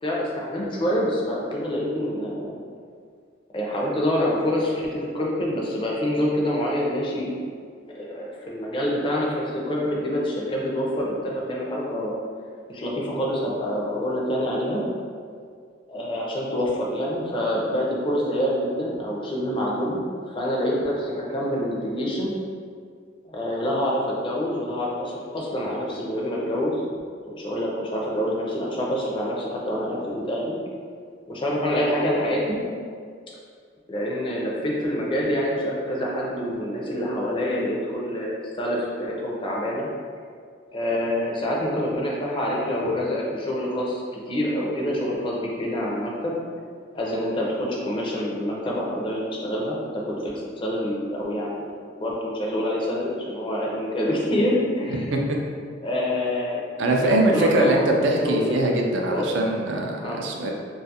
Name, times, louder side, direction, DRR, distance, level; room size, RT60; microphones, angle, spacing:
voice 1, 0.0-2.5 3.5-7.4 7.9-12.1 12.7-14.8 15.9-20.0 20.3-22.3 23.3-26.8 27.3-30.0 30.3-30.6 31.3-32.6 33.9-39.9 40.7-46.4 46.9-55.1 55.8-56.6 57.0-58.6 59.1-59.3 60.0-60.2, equal, 25° left, -3 dB, 0.4 m, -26 dB
voice 2, 54.9-55.4 56.8-60.5, right 1 dB, 70° right, 0 dB, 0.4 m, -22 dB
2.4 x 2.3 x 2.7 m, 2.1 s
head